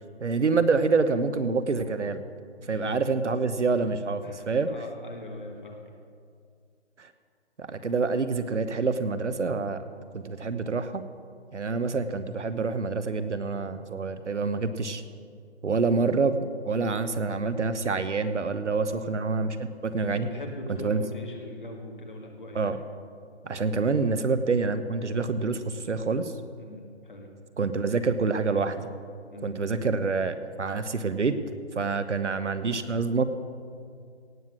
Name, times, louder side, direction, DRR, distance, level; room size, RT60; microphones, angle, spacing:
voice 1, 0.2-2.2 2.7-4.7 7.0-7.1 7.6-9.8 10.1-11.0 11.5-15.0 15.6-19.6 19.8-20.3 20.8-21.0 22.5-22.8 23.4-26.3 27.6-28.9 29.4-31.3 31.8-33.2, right 4 dB, 85° right, 12 dB, 1.1 m, -27 dB
voice 2, 2.6-3.0 4.2-5.8 18.8-19.1 20.1-22.7 26.6-27.3 29.3-29.6, left 1 dB, 45° left, 1 dB, 1.9 m, -41 dB
17.5 x 7.7 x 6.3 m, 2.3 s
figure-of-eight pair, 180°, 35 cm